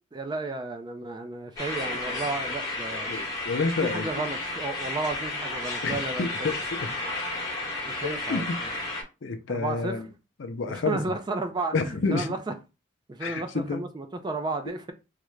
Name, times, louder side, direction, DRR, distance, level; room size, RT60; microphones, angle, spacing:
voice 1, 0.1-3.1 3.8-6.5 7.9-8.7 9.5-10.0 10.7-12.5 13.1-14.9, right 3 dB, 20° right, 0.4 m, -33 dB
sound 1, 1.6-9.0, left 2 dB, 20° left, 1.1 m, -32 dB
voice 2, 3.1-4.1 5.8-6.9 7.1-7.3 8.0-8.6 9.2-10.1 10.4-11.0 11.7-12.3 13.2-13.8, left 4 dB, 65° left, 0.5 m, -29 dB
3.6 x 2.1 x 3.1 m
head